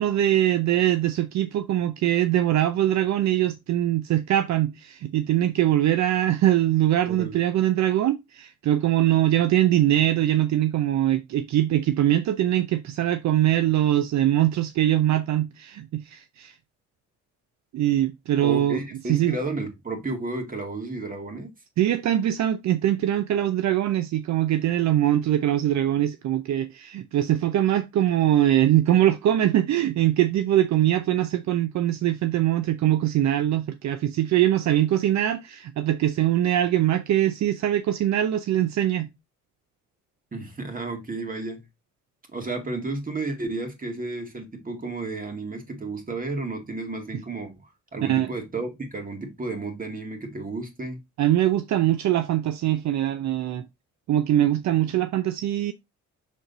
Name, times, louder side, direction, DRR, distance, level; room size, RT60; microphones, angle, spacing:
voice 1, 0.0-16.5 17.7-18.8 19.1-19.3 21.8-39.1 48.0-48.3 51.2-53.7 54.1-55.7, right 12 dB, 65° right, 0.6 m, -22 dB
voice 2, 7.1-7.4 18.4-21.5 40.3-41.6 42.3-47.5 47.9-51.0, right 3 dB, 30° right, 2.2 m, -32 dB
6.4 x 3.9 x 4.0 m
cardioid pair, 90°, 30 cm